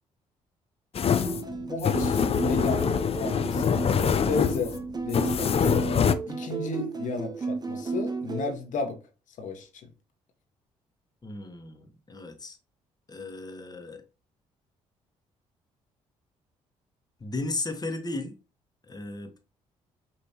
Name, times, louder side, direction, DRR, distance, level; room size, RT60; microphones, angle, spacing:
sound 1, 0.9-6.1, left 7 dB, 45° left, 0.5 m, -25 dB
sound 2, 1.2-8.5, right 4 dB, 30° right, 0.9 m, -33 dB
voice 1, 1.7-3.8 4.2-5.9 6.3-9.0 9.4-9.9, left 4 dB, 60° left, 1.3 m, -34 dB
voice 2, 11.2-12.6 13.1-14.0 17.2-18.4 18.9-19.4, left 2 dB, 30° left, 1.3 m, -35 dB
5.3 x 2.9 x 2.9 m
supercardioid pair, 55°, 14 cm